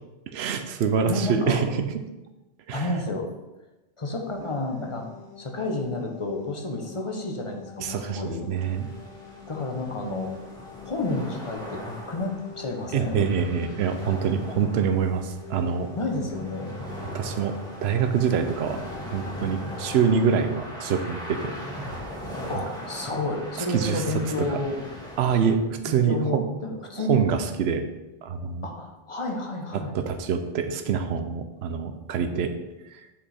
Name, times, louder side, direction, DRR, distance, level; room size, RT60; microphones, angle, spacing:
voice 1, 0.3-1.9 2.7-2.9 7.8-8.2 8.5-8.9 12.9-15.9 17.1-17.6 17.8-18.8 19.1-21.5 23.7-24.0 24.4-24.6 25.2-26.4 27.1-27.8 28.2-28.7 29.9-32.5 32.9-33.0, right 6 dB, 75° right, 7 dB, 0.9 m, -25 dB
voice 2, 1.1-1.6 2.7-3.3 4.0-5.1 5.4-8.5 9.5-10.3 10.8-13.2 14.5-14.7 15.9-16.7 22.5-24.8 25.8-27.3 28.6-29.9, left 2 dB, 30° left, 2 dB, 1.0 m, -30 dB
sound 1, 4.1-20.2, left 2 dB, 75° left, 2.0 m, -43 dB
sound 2, 8.5-25.5, equal, 5° left, 1.6 m, -40 dB
7.4 x 5.0 x 4.3 m, 1.0 s
omnidirectional pair, 1.1 m